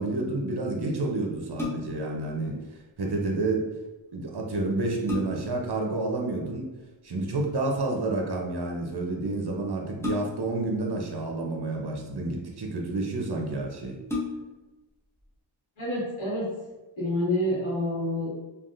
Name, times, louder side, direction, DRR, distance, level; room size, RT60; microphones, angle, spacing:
voice 1, 0.0-2.6 3.0-3.7 4.1-6.7 7.0-14.0, right 2 dB, 55° right, 0 dB, 0.7 m, -29 dB
sound 1, 1.6-2.1 4.1-4.2 4.7-5.6 7.2-7.6 10.0-10.6 11.6-12.3 13.0-13.1 13.4-13.5 14.0-14.7 15.2-15.3, left 3 dB, 5° left, 0.7 m, -34 dB
voice 2, 15.8-16.5 17.0-18.3, left 1 dB, 85° left, -8 dB, 1.4 m, -28 dB
3.4 x 2.3 x 2.5 m, 1.1 s
wide cardioid pair, 45°, 48 cm